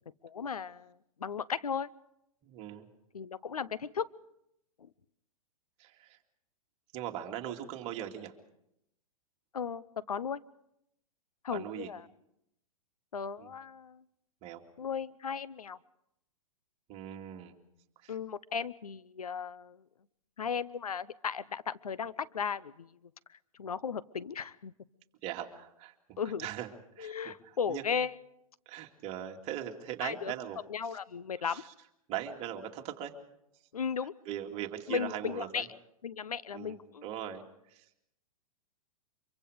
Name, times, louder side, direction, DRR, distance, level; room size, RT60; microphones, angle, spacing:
voice 1, 0.2-0.9 1.2-1.9 3.1-4.1 4.8-4.9 9.5-10.4 11.4-12.0 13.1-14.0 14.8-15.8 18.1-19.8 20.4-22.9 23.6-24.7 26.2-26.5 27.0-28.1 30.0-30.3 30.7-31.6 33.7-34.1 34.9-35.7 36.0-37.0, left 6 dB, 85° left, 17 dB, 0.8 m, -36 dB
voice 2, 2.4-2.9 5.8-6.2 6.9-8.3 11.5-11.9 13.4-13.5 14.4-14.6 16.9-17.6 18.0-18.1 25.2-26.7 27.0-27.1 27.4-27.8 28.7-30.6 30.9-31.0 31.4-31.7 32.1-33.1 34.3-35.7 36.5-37.8, right 11 dB, 35° right, 3 dB, 2.4 m, -40 dB
25.0 x 23.5 x 5.1 m, 0.80 s
hypercardioid pair, 120°, 18 cm